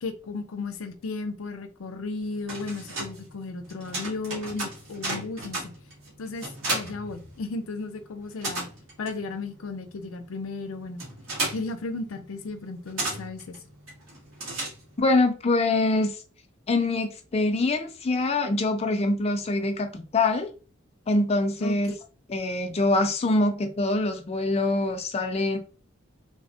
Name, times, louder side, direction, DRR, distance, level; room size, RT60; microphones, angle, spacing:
voice 1, 0.0-5.7 6.2-8.7 9.0-11.1 11.5-13.6 21.6-22.0, left 3 dB, 90° left, 0.5 m, -35 dB
sound 1, 2.2-15.2, right 2 dB, 75° right, 1.4 m, -35 dB
voice 2, 15.0-16.1 16.7-20.5 21.1-21.9 22.3-25.6, left 2 dB, 30° left, 0.4 m, -24 dB
3.3 x 2.1 x 2.6 m
head